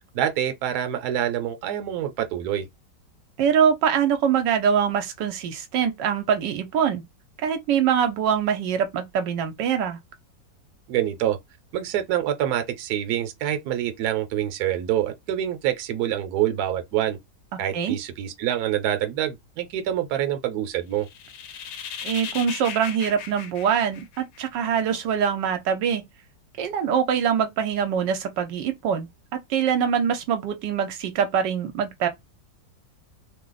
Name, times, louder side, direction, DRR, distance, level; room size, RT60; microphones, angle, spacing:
voice 1, 0.1-2.7 10.9-11.4 11.7-17.2 17.6-21.1, right 11 dB, 70° right, 1.1 m, -26 dB
voice 2, 3.4-7.0 7.4-10.0 17.7-18.0 22.0-26.0 26.6-32.1, right 8 dB, 85° right, 1.3 m, -24 dB
sound 1, 21.0-24.6, left 7 dB, 80° left, 1.3 m, -37 dB
3.0 x 2.0 x 3.8 m
omnidirectional pair, 1.9 m